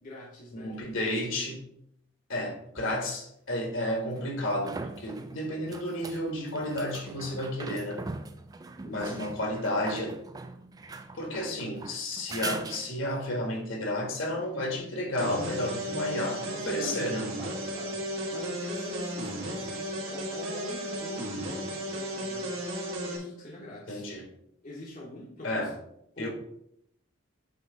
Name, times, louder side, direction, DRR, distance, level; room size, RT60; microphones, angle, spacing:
voice 1, 0.0-1.1 8.8-9.3 11.4-11.5 16.6-17.1 17.4-22.6 23.0-24.1 24.6-25.8 26.1-26.3, left 1 dB, 40° left, 1.1 m, -44 dB
voice 2, 0.5-1.6 2.3-8.0 8.9-10.2 11.1-17.3 23.9-24.3 25.4-25.7 26.2-26.3, left 1 dB, 65° left, 1.6 m, -32 dB
sound 1, 2.8-2.9 4.2-13.3 16.7-16.8, right 3 dB, 20° right, 0.3 m, -41 dB
sound 2, 15.2-23.2, right 1 dB, 70° right, 1.8 m, -34 dB
8.2 x 3.2 x 4.7 m
head